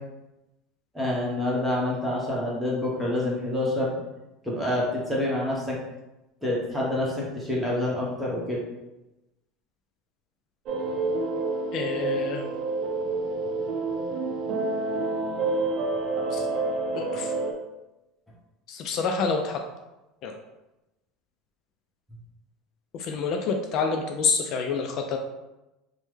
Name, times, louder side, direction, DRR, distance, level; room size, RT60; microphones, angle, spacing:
voice 1, 0.9-4.0 4.4-5.8 6.4-8.6, left 1 dB, 5° right, -5 dB, 1.0 m, -27 dB
sound 1, 10.7-17.5, right 3 dB, 50° right, 0.5 m, -28 dB
voice 2, 11.7-12.4 16.3-16.5 16.9-17.3 18.7-19.6 20.2-20.3 22.9-25.2, left 5 dB, 55° left, 4 dB, 0.3 m, -27 dB
3.2 x 2.1 x 3.2 m, 0.98 s
supercardioid pair, 110°, 0 cm